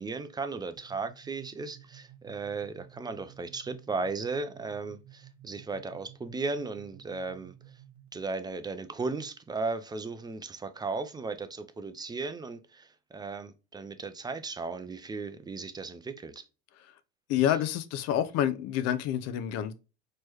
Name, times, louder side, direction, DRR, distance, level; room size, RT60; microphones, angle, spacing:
voice 1, 0.0-7.5 8.1-16.4, right 3 dB, 10° right, 0.5 m, -36 dB
sound 1, 0.8-8.3, right 11 dB, 40° right, 1.5 m, -54 dB
voice 2, 17.3-19.7, left 10 dB, 50° left, 0.7 m, -28 dB
4.4 x 3.2 x 2.7 m
hypercardioid pair, 100°, 33 cm